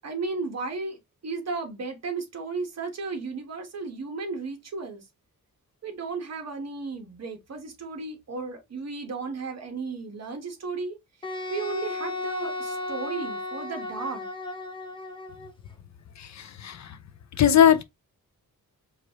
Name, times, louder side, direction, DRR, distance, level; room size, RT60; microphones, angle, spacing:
voice 1, 0.0-5.0 5.8-11.0 11.5-14.3, right 4 dB, 50° right, 1.2 m, -34 dB
Wind instrument woodwind instrument, 11.2-15.5, left 2 dB, 15° left, 0.6 m, -34 dB
voice 2, 16.2-17.0 17.4-17.8, left 9 dB, 55° left, 0.5 m, -20 dB
4.8 x 2.5 x 2.9 m
wide cardioid pair, 165°, 34 cm